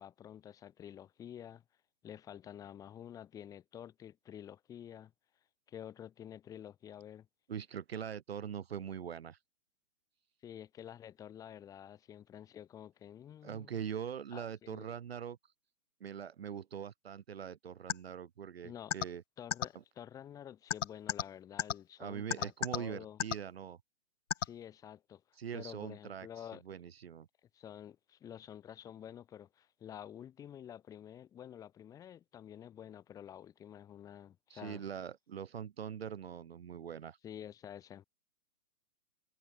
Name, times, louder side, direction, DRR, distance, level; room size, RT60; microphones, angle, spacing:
voice 1, 0.0-1.6 2.0-5.1 5.7-7.3 10.4-13.8 14.3-14.9 18.6-19.0 19.4-23.2 24.4-26.6 27.5-34.8 37.2-38.0, left 10 dB, 10° left, 6.7 m, -49 dB
voice 2, 7.5-9.4 13.4-15.4 16.0-19.2 22.0-23.8 25.4-27.3 34.5-37.2, right 8 dB, 50° right, 2.2 m, -42 dB
sound 1, 17.9-18.0 18.9-19.0 19.5-19.6 20.7-21.2 21.6-21.7 22.3-22.8 23.2-23.4 24.3-24.4, left 9 dB, 65° left, 1.1 m, -31 dB
hypercardioid pair, 180°, 40 cm